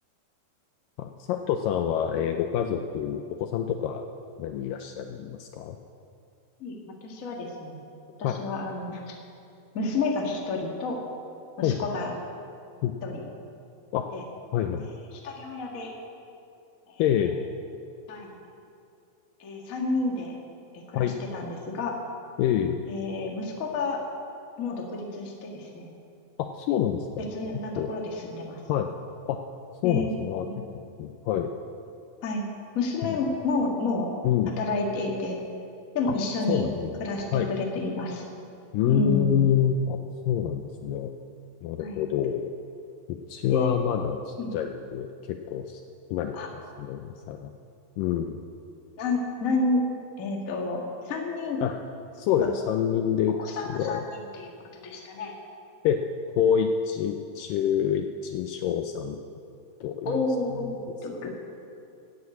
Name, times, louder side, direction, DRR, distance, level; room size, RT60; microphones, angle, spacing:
voice 1, 1.0-4.0 4.4-5.8 8.2-8.4 11.6-11.8 12.8-12.9 13.9-14.1 14.5-14.9 17.0-17.4 21.0-21.2 22.4-22.9 26.4-27.1 27.7-27.9 28.7-28.9 29.3-29.4 29.8-30.5 31.0-31.5 34.2-34.5 36.1-36.2 36.5-37.0 37.3-37.5 38.7-40.0 40.3-41.1 41.6-42.5 43.1-45.8 46.1-46.4 46.8-47.5 48.0-48.4 51.6-51.8 52.2-53.4 53.6-54.0 55.8-56.0 56.4-59.2 59.8-60.2 60.6-60.7 61.2-61.3, left 9 dB, 80° left, 6 dB, 2.1 m, -26 dB
voice 2, 7.0-7.8 8.2-9.2 9.7-11.0 11.6-12.1 13.0-13.2 14.1-14.2 15.2-15.9 18.1-18.3 19.4-20.4 20.9-21.9 22.9-24.0 24.6-25.9 27.3-28.6 29.8-30.2 30.5-30.6 32.2-32.4 32.7-34.1 34.6-35.4 35.9-36.6 37.0-38.2 38.9-39.5 41.8-42.0 43.5-43.7 44.4-44.5 46.3-46.5 49.0-49.8 50.2-51.6 52.4-52.5 53.4-54.5 54.8-55.3 60.0-60.8 61.0-61.3, left 2 dB, 40° left, 0 dB, 1.2 m, -30 dB
14.5 x 8.6 x 8.3 m, 2.6 s
omnidirectional pair, 4.3 m